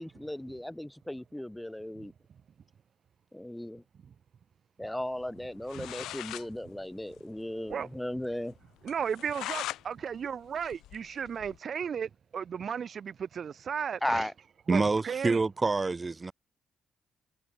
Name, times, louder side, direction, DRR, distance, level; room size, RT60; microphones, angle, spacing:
voice 1, 0.0-2.1 3.3-3.8 4.8-8.5 14.0-14.3, left 1 dB, 5° left, 0.9 m, -36 dB
sound 1, 5.4-5.5 5.7-6.5 6.8-6.9 7.2-7.3 7.7-7.8 8.2-8.3 8.9-9.8 10.2-11.6, left 14 dB, 85° left, 0.7 m, -39 dB
voice 2, 8.8-14.3 14.7-15.4, right 7 dB, 50° right, 0.5 m, -35 dB
voice 3, 14.7-16.3, right 3 dB, 25° right, 1.0 m, -27 dB
cardioid pair, 90°, 0 cm